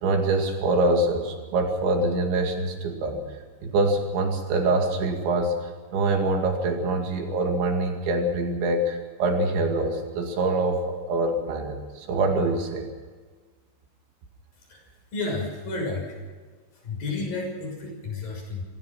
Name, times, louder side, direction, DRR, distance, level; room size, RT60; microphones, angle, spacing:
voice 1, 0.0-3.2 3.6-5.5 5.9-12.9, right 2 dB, 70° right, 3 dB, 4.6 m, -24 dB
voice 2, 14.6-16.2 16.7-18.6, left 3 dB, 45° left, 1 dB, 7.7 m, -32 dB
28.0 x 16.0 x 6.0 m, 1.4 s
omnidirectional pair, 5.6 m